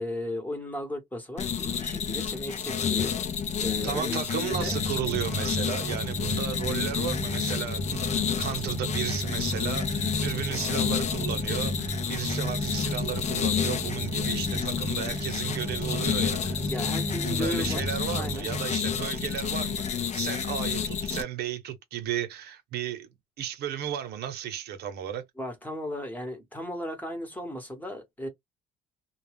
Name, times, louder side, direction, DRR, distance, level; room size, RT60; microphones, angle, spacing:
voice 1, 0.0-3.2 3.6-4.8 10.7-10.9 16.7-17.8 18.2-18.5 25.4-28.3, left 1 dB, 10° left, 1.0 m, -35 dB
sound 1, 1.4-21.2, left 7 dB, 40° left, 0.5 m, -30 dB
voice 2, 3.8-8.1 8.4-16.7 17.3-23.1 23.4-25.2, right 10 dB, 75° right, 0.7 m, -34 dB
sound 2, 4.5-18.7, equal, 15° right, 0.4 m, -34 dB
2.3 x 2.1 x 3.3 m
cardioid pair, 110°, 17 cm